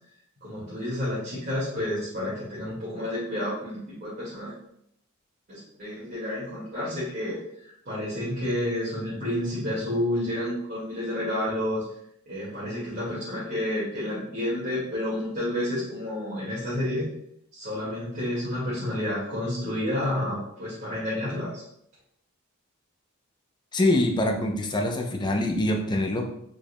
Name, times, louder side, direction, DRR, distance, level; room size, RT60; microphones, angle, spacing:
voice 1, 0.4-4.5 5.5-7.4 7.6-11.8 12.3-17.1 17.5-21.6, left 1 dB, 45° right, -10 dB, 1.9 m, -30 dB
voice 2, 23.7-26.2, left 1 dB, 20° left, 2 dB, 0.6 m, -24 dB
5.3 x 4.5 x 2.2 m, 0.74 s
head